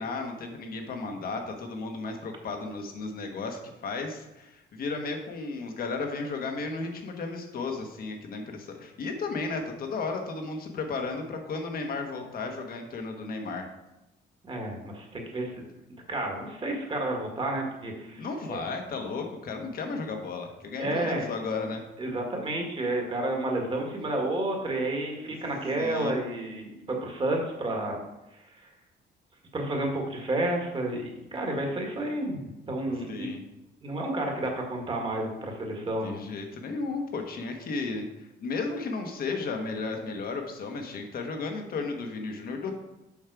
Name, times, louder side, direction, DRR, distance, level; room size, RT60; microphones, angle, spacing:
voice 1, 0.0-13.7 18.2-21.8 25.8-26.2 33.1-33.4 36.0-42.7, left 3 dB, 55° left, 4 dB, 1.4 m, -34 dB
voice 2, 14.4-15.6 16.1-18.6 20.8-21.2 22.0-28.0 28.5-28.6 29.5-33.3 33.8-36.2, right 1 dB, 30° right, 1 dB, 1.7 m, -31 dB
7.3 x 5.5 x 4.7 m, 0.95 s
cardioid pair, 125°, 19 cm